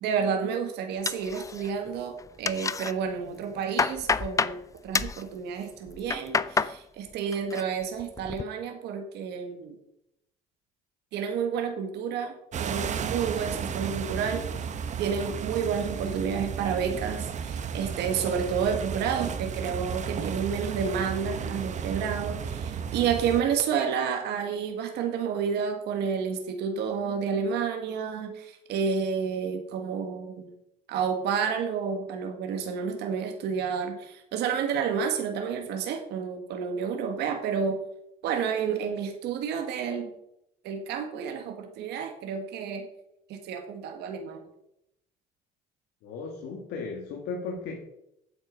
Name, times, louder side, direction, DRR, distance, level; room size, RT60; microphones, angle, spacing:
voice 1, 0.0-9.7 11.1-30.5 30.9-37.8 38.2-40.1 40.6-42.9 43.3-44.5, right 6 dB, 80° right, 4 dB, 1.6 m, -30 dB
sound 1, 1.1-1.9 2.2-2.9 3.4-4.6 4.9-5.2 5.9-6.8 7.1-7.6 8.0-8.4, left 5 dB, 20° left, 0.4 m, -28 dB
sound 2, 12.5-23.4, right 6 dB, 45° right, 1.0 m, -33 dB
voice 2, 46.0-47.8, left 4 dB, 85° left, 0 dB, 1.9 m, -36 dB
9.1 x 7.6 x 5.2 m, 0.80 s
cardioid pair, 110°, 17 cm